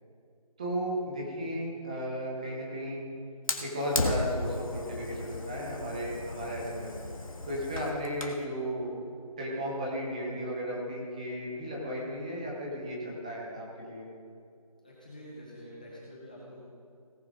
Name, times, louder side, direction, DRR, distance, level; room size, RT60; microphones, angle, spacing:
voice 1, 0.6-3.0 3.6-6.9 7.5-8.9 9.4-14.1, equal, 10° right, -4 dB, 1.2 m, -34 dB
Fire, 3.5-8.4, left 2 dB, 60° left, 1.6 m, -35 dB
voice 2, 14.8-16.6, equal, 15° left, -5 dB, 0.8 m, -47 dB
17.5 x 10.5 x 3.9 m, 2.4 s
figure-of-eight pair, 175°, 19 cm